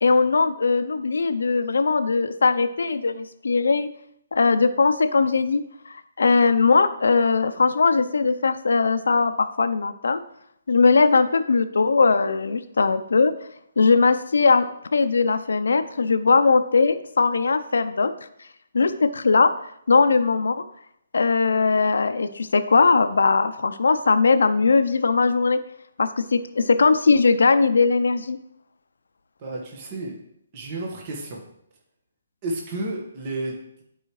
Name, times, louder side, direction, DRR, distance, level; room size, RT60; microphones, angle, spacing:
voice 1, 0.0-3.9 4.3-5.6 5.9-10.2 10.7-13.3 13.8-14.7 14.9-18.1 18.7-19.5 19.9-20.6 21.1-25.6 26.0-28.4, left 4 dB, 85° left, 10 dB, 0.6 m, -20 dB
voice 2, 29.4-30.1 30.5-31.4 32.4-33.8, right 2 dB, 30° right, -1 dB, 1.5 m, -32 dB
11.5 x 4.8 x 3.2 m, 0.72 s
hypercardioid pair, 160°, 0 cm